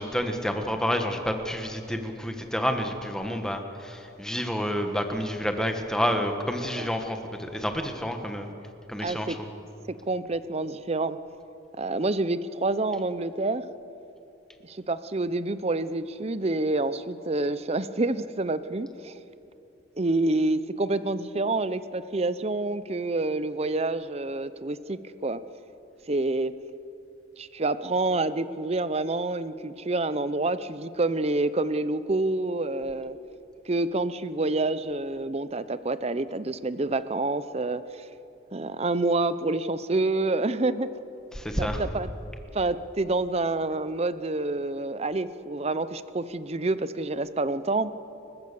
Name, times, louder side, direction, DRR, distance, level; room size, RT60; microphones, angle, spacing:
voice 1, 0.0-8.5 8.9-9.5 41.3-41.8, equal, 5° left, 5 dB, 1.5 m, -29 dB
voice 2, 9.0-9.4 9.9-11.2 11.8-13.6 14.6-19.2 20.0-25.4 26.1-26.5 27.4-33.2 33.7-38.1 38.5-40.9 41.6-42.1 42.5-47.9, right 2 dB, 30° right, 14 dB, 0.6 m, -28 dB
29.5 x 15.0 x 7.0 m, 2.9 s
head